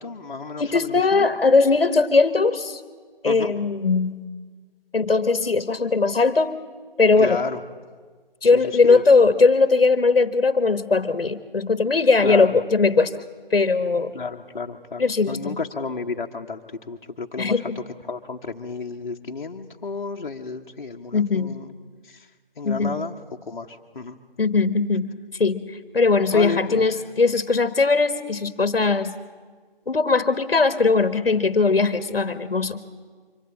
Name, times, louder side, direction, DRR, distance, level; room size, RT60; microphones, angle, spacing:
voice 1, 0.0-1.3 3.2-3.5 7.2-7.6 8.5-9.0 12.2-12.6 14.1-21.8 22.0-22.3 22.6-23.2 23.4-24.2 26.3-26.9, left 4 dB, 55° left, 1 dB, 1.1 m, -32 dB
voice 2, 0.6-2.8 3.2-4.2 4.9-6.6 7.0-7.4 8.4-13.1 13.5-14.1 15.0-15.6 17.4-17.8 21.1-21.6 22.6-23.0 24.4-25.1 25.4-29.2 29.9-32.8, left 4 dB, 75° left, 13 dB, 1.2 m, -19 dB
24.5 x 16.0 x 7.6 m, 1.5 s
figure-of-eight pair, 160°, 29 cm